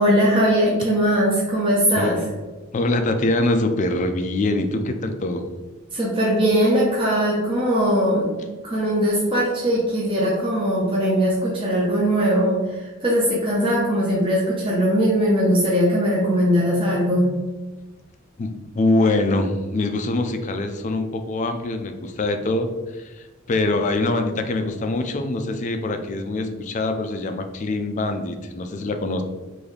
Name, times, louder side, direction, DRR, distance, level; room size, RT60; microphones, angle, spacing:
voice 1, 0.0-2.2 5.9-8.4 8.6-17.3, equal, 25° right, -5 dB, 0.6 m, -20 dB
voice 2, 2.7-5.4 18.4-29.2, left 2 dB, 35° left, 6 dB, 0.3 m, -24 dB
3.8 x 2.6 x 3.2 m, 1.2 s
head